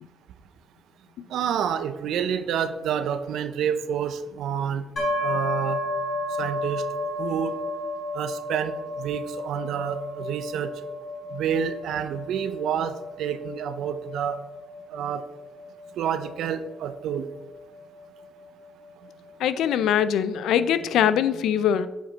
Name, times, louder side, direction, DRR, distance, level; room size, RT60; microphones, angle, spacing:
voice 1, 1.3-4.8 5.2-5.8 6.4-6.8 7.2-7.6 8.1-10.7 11.3-14.4 14.9-15.3 16.0-17.3, right 8 dB, 80° right, 12 dB, 0.6 m, -28 dB
sound 1, 5.0-18.6, left 1 dB, 45° left, 2.7 m, -32 dB
voice 2, 19.4-21.9, left 9 dB, 80° left, 14 dB, 0.4 m, -22 dB
8.0 x 5.0 x 4.1 m, 1.0 s
cardioid pair, 90°, 0 cm